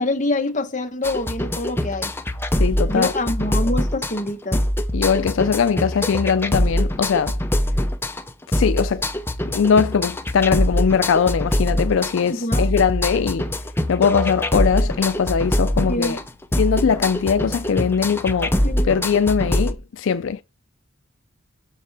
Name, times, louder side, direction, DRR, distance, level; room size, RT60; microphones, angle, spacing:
voice 1, 0.0-2.1 2.9-4.6 12.3-12.7 15.8-16.2 18.6-19.0, left 2 dB, 35° left, 1.1 m, -25 dB
sound 1, 1.0-19.7, left 1 dB, 10° left, 0.6 m, -23 dB
voice 2, 2.6-3.1 4.9-7.3 8.5-9.0 9.5-13.5 13.9-16.2 16.6-18.5 18.9-20.4, left 6 dB, 65° left, 0.4 m, -20 dB
7.0 x 6.7 x 3.3 m
head